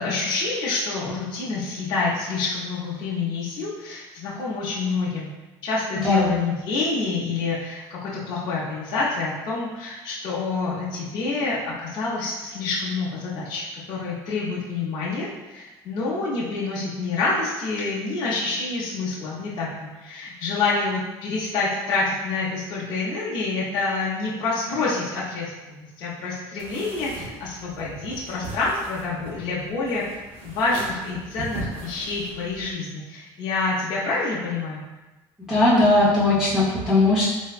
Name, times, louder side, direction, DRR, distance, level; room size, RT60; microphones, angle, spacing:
voice 1, 0.0-5.3 5.6-30.1 30.4-34.8, left 3 dB, 45° left, -6 dB, 0.5 m, -27 dB
voice 2, 5.9-6.4 35.5-37.2, left 2 dB, 5° right, -11 dB, 0.5 m, -19 dB
sound 1, 26.6-32.7, right 2 dB, 65° right, 0.6 m, -39 dB
3.3 x 2.0 x 2.3 m, 1.1 s
cardioid pair, 170°, 11 cm